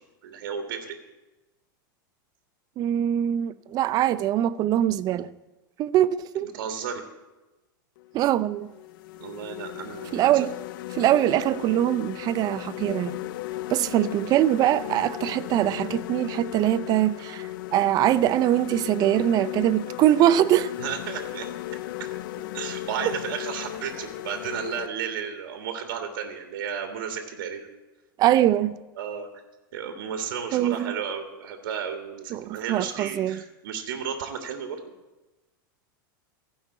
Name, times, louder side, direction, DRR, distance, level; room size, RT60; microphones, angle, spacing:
voice 1, 0.2-1.0 6.4-7.0 9.2-10.5 19.8-19.9 20.8-22.1 22.4-27.7 29.0-29.3 29.7-34.8, right 7 dB, 70° right, 1.5 m, -33 dB
voice 2, 2.8-5.3 5.8-6.5 8.1-8.7 10.1-10.5 10.9-13.2 13.7-20.7 28.2-28.8 30.5-30.9 32.3-33.4, right 12 dB, 35° right, 0.5 m, -23 dB
sound 1, 8.0-8.1 8.7-24.9, left 15 dB, 70° left, 0.4 m, -36 dB
15.5 x 5.5 x 8.1 m
supercardioid pair, 130°, 11 cm